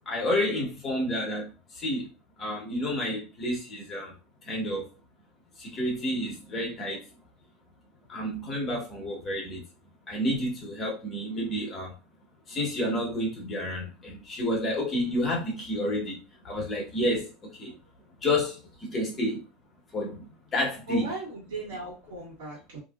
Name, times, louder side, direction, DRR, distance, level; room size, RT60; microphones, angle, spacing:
voice 1, 0.1-1.5 1.8-2.1 2.4-4.1 4.5-4.8 5.6-7.0 8.1-9.6 10.1-11.9 12.5-16.2 16.4-17.3 17.6-17.7 18.2-18.5 18.9-19.4 19.9-20.2 20.5-21.1, left 1 dB, 20° left, 1.1 m, -29 dB
voice 2, 20.9-22.8, right 2 dB, 75° right, 1.7 m, -37 dB
2.9 x 2.7 x 2.4 m
supercardioid pair, 145°, 0 cm